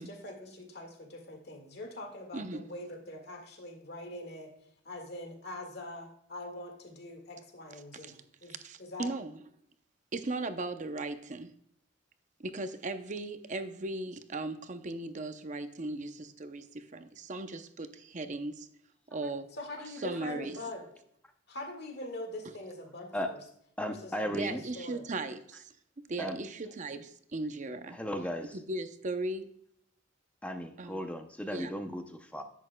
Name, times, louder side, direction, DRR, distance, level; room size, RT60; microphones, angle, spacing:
voice 1, 0.0-4.5 4.9-9.1 19.6-20.9 21.5-23.4 23.8-25.1, left 1 dB, 60° left, 4 dB, 1.8 m, -43 dB
voice 2, 2.3-2.6 8.0-8.2 8.5-9.4 10.1-11.5 12.4-18.7 19.1-19.5 20.0-20.6 22.4-22.5 24.3-28.0 28.5-29.5 30.8-31.0 31.5-31.7, right 2 dB, 40° right, 9 dB, 0.7 m, -37 dB
voice 3, 23.8-24.6 25.5-25.6 26.2-26.4 27.9-28.6 30.4-32.4, equal, 5° left, 6 dB, 0.6 m, -36 dB
10.5 x 8.2 x 2.2 m, 0.71 s
head